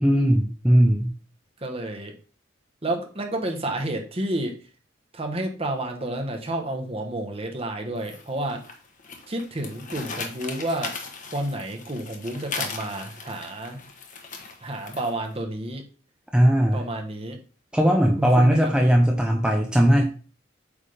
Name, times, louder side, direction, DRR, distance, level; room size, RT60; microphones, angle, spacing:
voice 1, 0.0-1.1 16.3-16.8 17.7-20.0, equal, 5° right, 1 dB, 0.7 m, -19 dB
voice 2, 1.6-2.1 2.8-4.5 5.1-8.6 9.3-10.9 11.3-13.8 14.6-15.8 16.7-17.4 18.2-18.7, right 1 dB, 30° right, 3 dB, 1.2 m, -30 dB
Eating Chips, 8.0-15.3, left 4 dB, 40° left, 1.2 m, -38 dB
8.3 x 3.6 x 5.1 m, 0.38 s
head